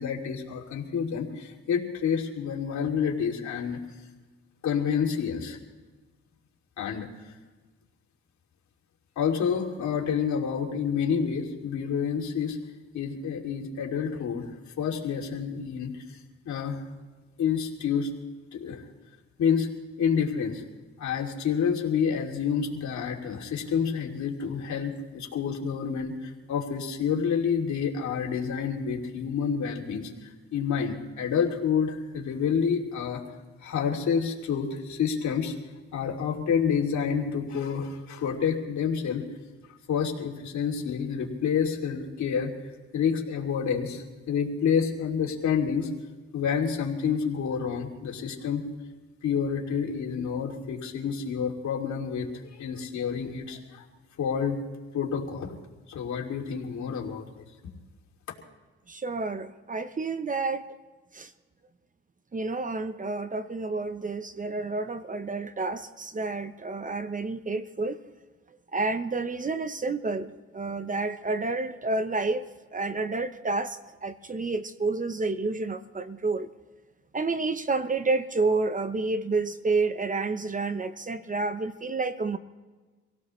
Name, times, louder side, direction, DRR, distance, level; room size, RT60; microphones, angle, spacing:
voice 1, 0.0-3.8 4.6-5.6 6.8-7.1 9.2-12.6 12.9-16.0 16.4-16.8 17.4-18.1 18.5-18.8 19.4-19.7 20.0-20.6 21.0-33.2 33.6-35.5 35.9-39.2 39.9-42.5 42.9-45.9 46.3-48.7 49.2-53.8 54.2-54.6 54.9-55.6 55.9-57.3, left 7 dB, 70° left, 0 dB, 2.8 m, -28 dB
voice 2, 58.9-60.7 61.1-61.3 62.3-68.0 68.7-72.4 72.7-76.5 77.1-82.4, right 3 dB, 25° right, 10 dB, 0.9 m, -29 dB
26.0 x 17.0 x 3.2 m, 1.3 s
cardioid pair, 90°, 30 cm